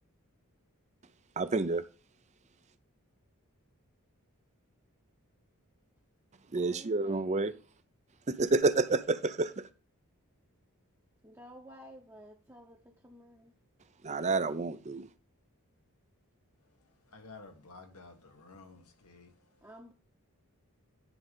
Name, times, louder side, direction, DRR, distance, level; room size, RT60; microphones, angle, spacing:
voice 1, 1.4-1.8 6.5-7.5 8.3-9.7 14.0-15.1, right 3 dB, 30° right, 0.5 m, -29 dB
voice 2, 11.2-12.8 13.1-13.4 19.6-19.9, equal, 10° right, 0.9 m, -51 dB
voice 3, 17.1-19.3, left 3 dB, 85° left, 1.7 m, -52 dB
10.0 x 3.8 x 5.3 m
head